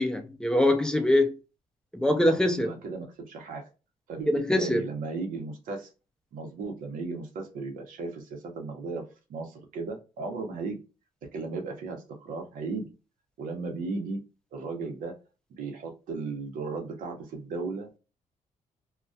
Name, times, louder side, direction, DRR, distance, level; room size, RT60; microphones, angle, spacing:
voice 1, 0.0-1.4 1.9-2.7 4.3-4.8, left 1 dB, 5° left, 0.4 m, -23 dB
voice 2, 2.5-3.6 4.1-4.3 4.6-5.9 6.3-9.0 9.3-10.8 11.3-12.9 13.4-14.2 14.5-15.2 15.5-17.9, right 4 dB, 85° right, 0.8 m, -35 dB
2.2 x 2.2 x 2.5 m
cardioid pair, 115°, 14 cm